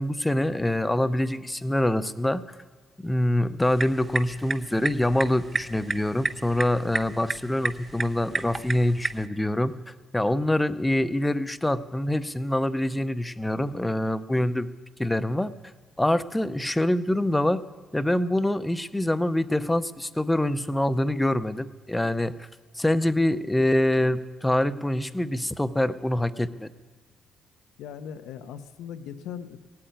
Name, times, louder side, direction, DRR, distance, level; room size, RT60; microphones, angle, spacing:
voice 1, 0.0-2.6 3.0-9.7 10.1-14.7 15.0-15.5 16.0-17.6 17.9-22.5 22.8-26.7, left 1 dB, 10° left, 12 dB, 0.6 m, -25 dB
sound 1, 3.6-9.3, right 4 dB, 30° right, 0.6 m, -33 dB
voice 2, 27.8-29.6, left 8 dB, 90° left, 9 dB, 0.8 m, -39 dB
17.0 x 8.6 x 9.3 m, 1.3 s
cardioid pair, 90°, 0 cm